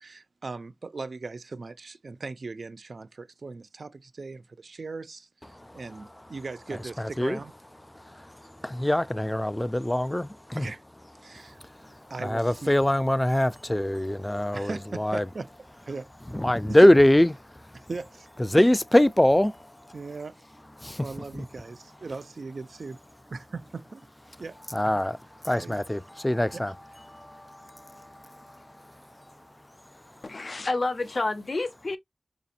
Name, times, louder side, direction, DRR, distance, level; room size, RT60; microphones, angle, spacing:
voice 1, 0.0-7.5 10.6-10.8 11.2-11.6 12.1-12.8 14.5-15.5 15.9-16.1 16.7-16.9 17.7-18.3 19.9-20.4 21.0-23.0 23.3-24.0 24.4-24.6 25.5-25.8, right 3 dB, 70° right, 0.4 m, -38 dB
voice 2, 5.4-6.3 6.7-7.4 7.9-10.7 11.2-15.3 16.3-17.9 18.4-20.0 20.8-21.5 24.7-26.8 27.1-30.3, left 1 dB, 15° left, 0.3 m, -25 dB
voice 3, 30.2-32.0, left 2 dB, 60° left, 0.6 m, -29 dB
4.9 x 2.8 x 2.3 m
wide cardioid pair, 80°, 0 cm